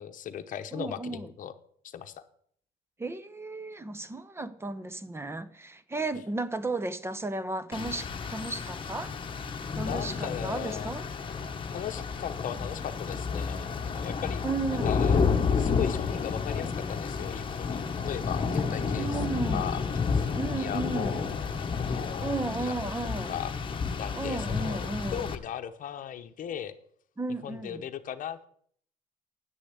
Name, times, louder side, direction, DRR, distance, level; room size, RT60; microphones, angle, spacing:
voice 1, 0.0-1.5 1.8-2.2 9.8-10.9 11.7-15.3 15.6-19.2 19.5-19.8 20.1-20.3 20.5-22.9 23.3-23.5 24.0-26.7 27.4-28.5, left 9 dB, 50° left, 0.9 m, -38 dB
voice 2, 0.7-1.3 3.0-9.1 9.7-11.0 14.4-15.1 19.0-19.9 20.4-21.4 22.2-23.3 24.2-25.3 27.2-27.8, right 3 dB, 15° right, 0.8 m, -34 dB
Rain, 7.7-25.4, left 5 dB, 30° left, 1.1 m, -31 dB
9.4 x 6.8 x 8.1 m
cardioid pair, 110°, 17 cm